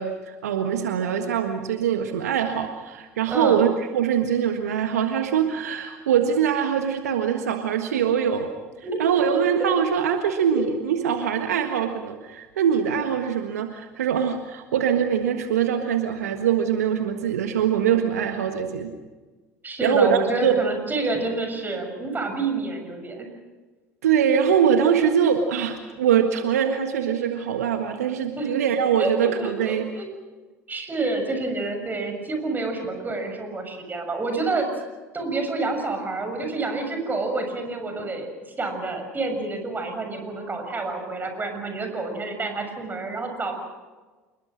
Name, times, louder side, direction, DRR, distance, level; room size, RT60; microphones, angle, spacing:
voice 1, 0.0-8.5 9.0-18.9 19.8-20.6 24.0-29.9, right 8 dB, 75° right, 6 dB, 1.6 m, -23 dB
voice 2, 19.6-23.3 28.4-28.5 29.0-30.1 30.7-34.7 35.1-38.3 38.6-43.5, right 3 dB, 20° right, 5 dB, 6.9 m, -28 dB
28.0 x 21.5 x 6.4 m, 1.3 s
figure-of-eight pair, 65°, 8 cm